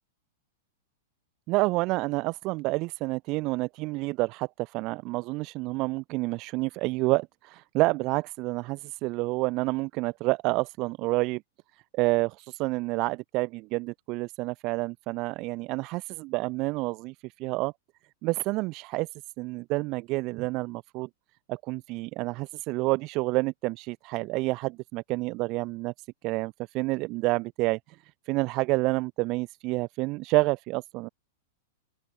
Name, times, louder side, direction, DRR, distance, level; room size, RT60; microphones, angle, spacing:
voice 1, 1.5-11.4 11.9-17.7 18.2-19.1 19.4-21.1 21.5-25.9 26.2-27.8 28.3-31.1, right 23 dB, 35° right, 1.6 m, -29 dB
open air
supercardioid pair, 160°, 0 cm